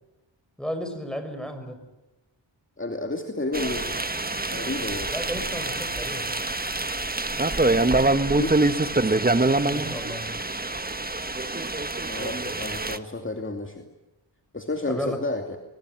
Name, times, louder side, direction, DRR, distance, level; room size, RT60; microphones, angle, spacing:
voice 1, 0.6-1.8 5.1-6.3 9.6-10.3 14.9-15.2, equal, ahead, 7 dB, 6.2 m, -33 dB
voice 2, 2.8-4.0 4.5-5.1 8.3-8.6 12.1-13.9 14.5-15.6, left 2 dB, 25° left, 4 dB, 2.6 m, -31 dB
sound 1, 3.5-13.0, right 2 dB, 20° right, 1.4 m, -25 dB
22.5 x 21.5 x 9.5 m, 1.0 s
cardioid pair, 60°, 45 cm